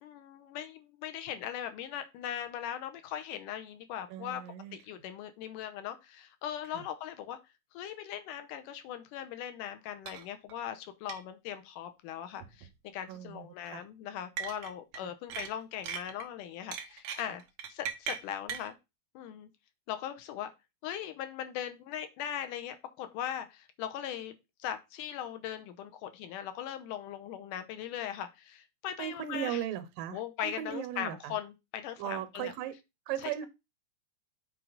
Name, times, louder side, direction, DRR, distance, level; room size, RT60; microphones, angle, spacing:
voice 1, 0.0-4.4 4.7-7.4 7.7-17.4 17.7-18.8 19.2-19.5 19.9-20.5 20.8-24.3 24.6-29.6 30.1-32.5 33.2-33.5, left 10 dB, 80° left, 2.4 m, -39 dB
voice 2, 4.1-4.8 6.7-6.8 13.1-13.8 15.0-15.1 29.0-31.3 32.0-32.8 33.1-33.5, right 11 dB, 90° right, 2.6 m, -37 dB
sound 1, 10.1-10.2 10.5-10.6 11.1-11.2 12.4-12.7 14.4-15.0 15.3-16.2 16.7-18.7, right 7 dB, 65° right, 2.0 m, -38 dB
7.9 x 4.7 x 3.9 m
omnidirectional pair, 3.8 m